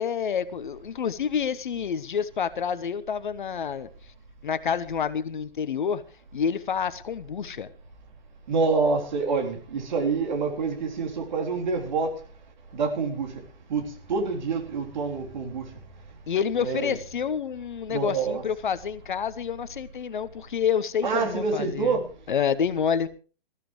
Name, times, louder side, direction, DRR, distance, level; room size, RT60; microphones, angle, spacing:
voice 1, 0.0-3.9 4.4-6.0 6.3-7.7 16.3-21.9 22.3-23.1, left 7 dB, 55° left, 15 dB, 1.1 m, -28 dB
voice 2, 8.5-12.2 12.7-13.4 13.7-15.7 16.6-17.0 17.9-18.4 21.0-22.1, right 4 dB, 50° right, 2 dB, 3.7 m, -27 dB
20.0 x 14.5 x 3.2 m, 0.36 s
figure-of-eight pair, 125°, 29 cm